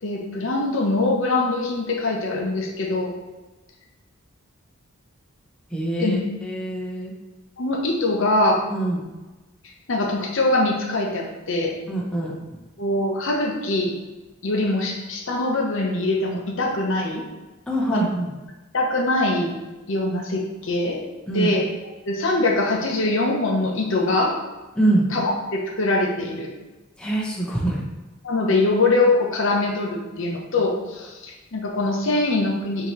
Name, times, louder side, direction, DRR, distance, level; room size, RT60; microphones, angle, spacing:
voice 1, 0.0-3.1 6.0-6.2 7.6-8.6 9.9-11.8 12.8-13.9 14.4-17.2 17.9-18.0 18.7-19.5 19.9-21.0 21.3-21.7 22.1-24.3 25.1-26.5 28.2-32.9, left 2 dB, 60° left, 0 dB, 0.7 m, -23 dB
voice 2, 5.7-7.1 8.7-9.0 11.9-12.3 17.7-18.3 21.3-21.5 24.8-25.0 27.0-27.8, right 1 dB, 5° left, -5 dB, 0.7 m, -24 dB
5.7 x 2.9 x 3.1 m, 1.1 s
head